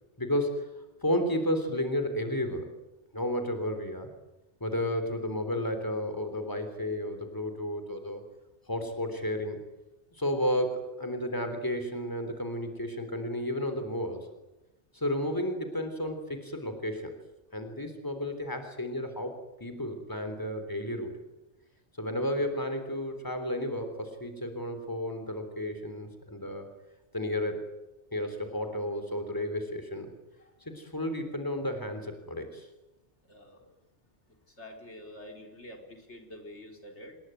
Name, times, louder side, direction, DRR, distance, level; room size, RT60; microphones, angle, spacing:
voice 1, 0.2-0.7 1.0-2.7 3.1-4.1 4.6-8.2 8.7-9.6 10.1-14.3 14.9-17.1 17.5-19.3 19.6-21.1 22.0-26.7 27.1-27.7 28.1-30.1 30.7-32.7, left 1 dB, 20° left, 7 dB, 3.7 m, -32 dB
voice 2, 33.2-33.7 34.5-37.2, left 1 dB, 80° left, 3 dB, 4.5 m, -47 dB
28.0 x 21.0 x 9.3 m, 1.0 s
omnidirectional pair, 1.2 m